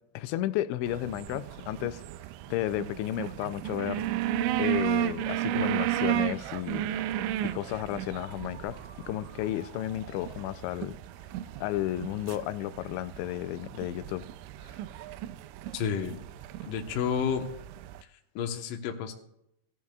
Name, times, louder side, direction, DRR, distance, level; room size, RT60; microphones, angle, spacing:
voice 1, 0.1-2.0 2.5-4.1 4.6-6.9 7.4-8.8 9.1-11.0 11.6-14.3 14.6-14.8, left 13 dB, 90° left, 2.9 m, -33 dB
sound 1, 0.9-18.0, right 12 dB, 85° right, 2.8 m, -34 dB
sound 2, 4.3-10.5, right 2 dB, 30° right, 2.2 m, -53 dB
voice 2, 15.7-16.1 16.6-17.5 18.4-19.1, left 7 dB, 75° left, 2.1 m, -30 dB
17.0 x 12.0 x 2.4 m
omnidirectional pair, 5.1 m